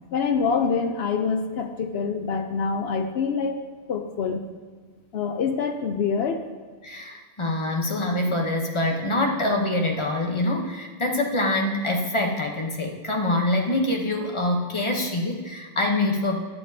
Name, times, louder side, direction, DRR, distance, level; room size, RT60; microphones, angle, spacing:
voice 1, 0.1-4.4 5.1-6.4, left 5 dB, 70° left, 5 dB, 0.9 m, -26 dB
voice 2, 6.8-16.4, left 1 dB, 30° left, 1 dB, 0.9 m, -25 dB
11.5 x 7.0 x 2.7 m, 1.5 s
omnidirectional pair, 1.1 m